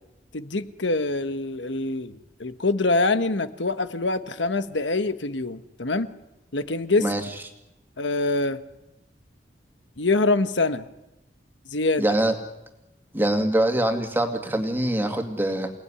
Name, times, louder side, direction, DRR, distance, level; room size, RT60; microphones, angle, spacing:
voice 1, 0.3-6.1 6.5-7.1 8.0-8.6 10.0-10.9 11.7-12.0, left 3 dB, 80° left, 11 dB, 1.4 m, -25 dB
voice 2, 12.0-12.3 13.1-15.7, right 1 dB, 10° right, 5 dB, 2.3 m, -23 dB
29.0 x 18.5 x 9.9 m, 0.95 s
head